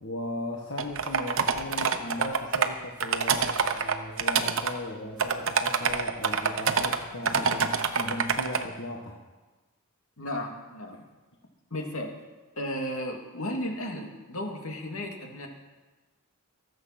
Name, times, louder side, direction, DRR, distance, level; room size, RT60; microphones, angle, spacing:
voice 1, 0.0-9.2, left 1 dB, 55° left, -1 dB, 1.4 m, -37 dB
sound 1, 0.8-2.7 3.0-4.7 5.2-7.0 7.3-8.6, right 6 dB, 60° right, 1.0 m, -26 dB
voice 2, 10.2-11.0 11.7-12.2 12.6-15.5, left 1 dB, 75° left, 2 dB, 2.4 m, -34 dB
22.5 x 7.9 x 5.9 m, 1.2 s
head